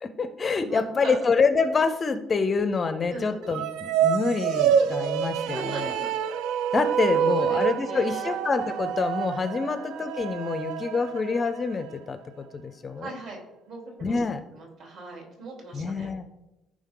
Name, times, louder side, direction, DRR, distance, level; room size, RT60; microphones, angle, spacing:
voice 1, 0.0-5.9 6.7-13.1 14.0-14.4 15.7-16.3, left 4 dB, 20° left, 10 dB, 0.4 m, -27 dB
voice 2, 0.6-1.2 3.1-3.4 5.4-6.1 7.1-8.4 9.6-9.8 13.0-13.4 13.7-14.2 14.5-16.1, right 2 dB, 55° right, -1 dB, 3.3 m, -39 dB
sound 1, 3.4-11.9, right 9 dB, 85° right, 0.5 m, -27 dB
14.5 x 5.1 x 3.7 m, 0.96 s
cardioid pair, 175°, 0 cm